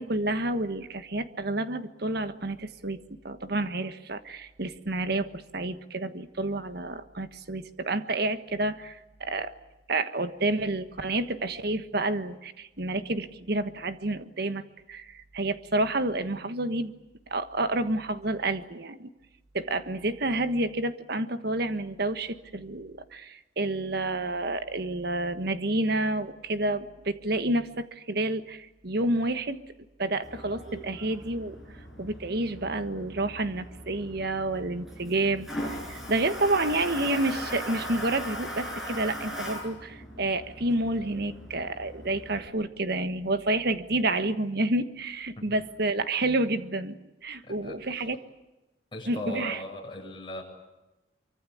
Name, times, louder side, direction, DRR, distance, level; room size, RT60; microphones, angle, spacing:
voice 1, 0.0-3.0 3.2-5.3 5.5-9.5 9.9-14.6 14.9-16.9 17.3-19.1 19.5-29.6 30.0-31.6 32.0-47.0 47.2-48.2 49.1-49.6, right 2 dB, 60° right, 10 dB, 1.5 m, -29 dB
Toilet flush, 30.2-42.5, equal, ahead, 7.6 m, -39 dB
voice 2, 47.5-48.0 48.9-50.4, left 1 dB, 30° left, -1 dB, 8.0 m, -38 dB
24.5 x 24.5 x 8.7 m, 1.0 s
head